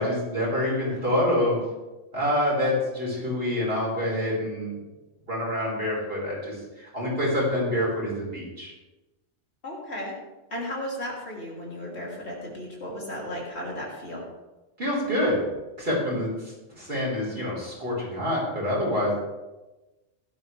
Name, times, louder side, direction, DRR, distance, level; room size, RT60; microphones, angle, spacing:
voice 1, 0.0-1.6 2.1-4.8 5.3-8.7 14.8-15.4 15.8-16.3 16.7-19.1, left 1 dB, 50° right, -5 dB, 5.3 m, -26 dB
voice 2, 9.6-10.1 10.5-14.2 16.1-16.3, left 1 dB, 60° left, -3 dB, 3.3 m, -35 dB
16.0 x 12.0 x 3.3 m, 1.1 s
omnidirectional pair, 1.2 m